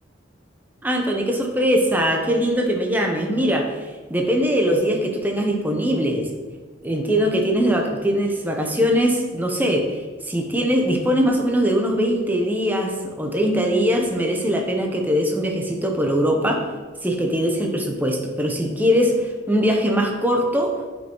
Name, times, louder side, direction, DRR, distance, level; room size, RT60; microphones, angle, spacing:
voice 1, 0.8-3.7 4.1-6.3 6.8-16.6 17.0-20.8, equal, 10° right, 1 dB, 0.8 m, -21 dB
8.6 x 5.3 x 3.1 m, 1.4 s
head